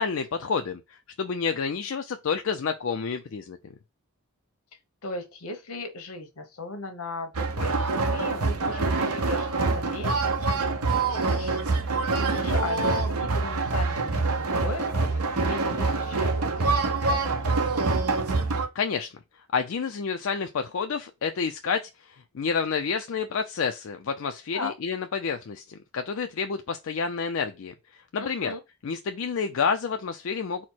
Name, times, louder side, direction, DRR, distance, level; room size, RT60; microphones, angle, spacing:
voice 1, 0.0-3.7 18.7-19.1 19.5-28.5 28.8-30.6, left 5 dB, 65° left, 0.4 m, -29 dB
voice 2, 5.0-10.5 11.0-17.6 24.5-24.7 28.2-28.6, left 2 dB, 85° left, 1.1 m, -38 dB
sound 1, 7.3-18.7, right 3 dB, 85° right, 0.8 m, -25 dB
4.3 x 2.1 x 4.4 m
head